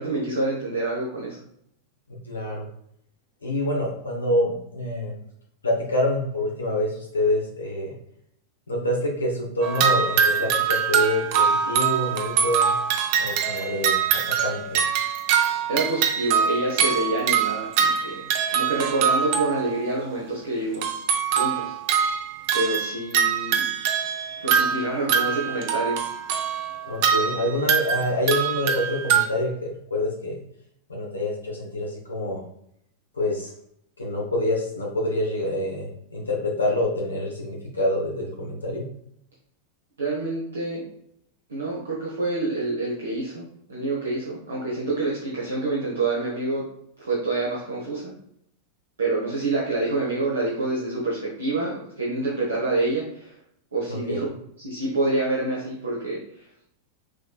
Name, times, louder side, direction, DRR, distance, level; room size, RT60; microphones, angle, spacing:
voice 1, 0.0-1.4 15.7-20.9 21.3-21.7 22.5-23.7 24.4-26.0 40.0-40.8 41.5-46.7 47.0-48.1 49.0-53.4 53.7-54.3 54.6-56.2, right 2 dB, 70° right, -5 dB, 1.0 m, -27 dB
voice 2, 2.3-2.6 3.4-5.1 5.6-7.9 8.7-12.7 13.2-14.0 14.4-14.8 26.9-30.4 30.9-32.4 33.2-33.5 34.0-38.9 53.9-54.2, left 1 dB, 75° left, -1 dB, 0.9 m, -26 dB
sound 1, 9.6-19.8 20.7-29.3, right 7 dB, 45° right, 0.6 m, -23 dB
6.1 x 3.3 x 2.3 m, 0.72 s
figure-of-eight pair, 90°, 0 cm